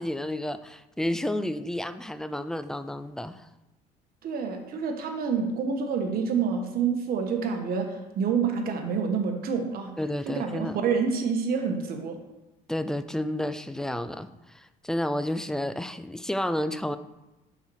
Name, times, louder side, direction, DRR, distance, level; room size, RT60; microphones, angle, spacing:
voice 1, 0.0-3.5 10.0-10.8 12.7-17.0, left 1 dB, 5° left, 12 dB, 0.3 m, -31 dB
voice 2, 4.2-9.9 10.3-12.2, right 6 dB, 60° right, 4 dB, 1.2 m, -28 dB
5.6 x 4.4 x 6.2 m, 1.0 s
cardioid pair, 110°, 17 cm